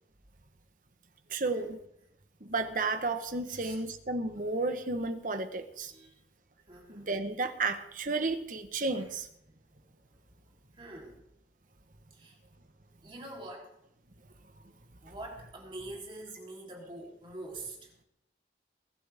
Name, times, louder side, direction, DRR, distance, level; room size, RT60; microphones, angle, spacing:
voice 1, 1.3-1.8 2.4-5.9 6.9-9.2, right 3 dB, 50° right, 8 dB, 1.2 m, -32 dB
voice 2, 3.5-3.8 5.9-6.2 6.7-7.1 8.9-9.1 9.7-9.8 10.1-11.2 12.1-12.4 13.0-13.8 15.0-17.9, right 2 dB, 30° right, -1 dB, 3.5 m, -45 dB
22.5 x 12.0 x 3.6 m, 0.76 s
head